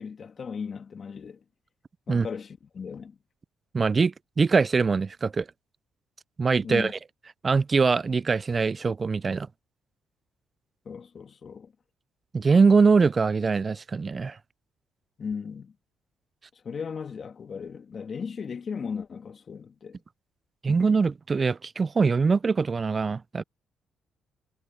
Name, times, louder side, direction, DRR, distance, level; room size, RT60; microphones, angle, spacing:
voice 1, 0.0-1.4 2.1-3.2 6.6-6.9 10.9-11.7 15.2-15.7 16.6-20.0, left 6 dB, 45° left, 2.4 m, -36 dB
voice 2, 3.7-5.5 6.4-6.9 7.4-9.5 12.3-14.4 20.6-23.4, right 4 dB, 35° right, 0.3 m, -23 dB
cardioid pair, 90°, 0 cm